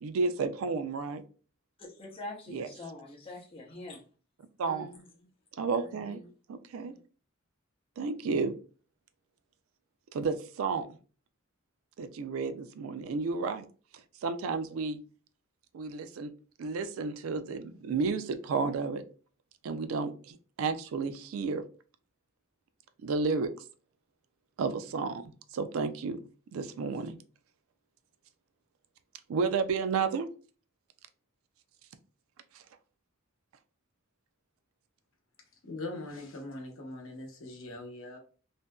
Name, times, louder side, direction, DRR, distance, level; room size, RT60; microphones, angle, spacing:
voice 1, 0.0-1.2 2.5-2.7 4.6-4.9 5.6-6.2 6.5-6.9 8.0-8.6 10.1-10.9 12.0-13.7 14.2-15.0 15.7-16.3 16.6-19.0 19.6-21.6 23.0-23.5 24.6-25.2 25.5-26.2 26.5-27.2 29.3-30.3 32.5-32.6, right 4 dB, 90° right, 11 dB, 0.4 m, -32 dB
voice 2, 1.8-4.0 4.6-5.3 5.8-6.3, left 2 dB, 25° left, -1 dB, 0.7 m, -45 dB
voice 3, 35.6-38.2, left 2 dB, 70° left, 2 dB, 0.8 m, -41 dB
2.7 x 2.6 x 2.2 m, 0.38 s
head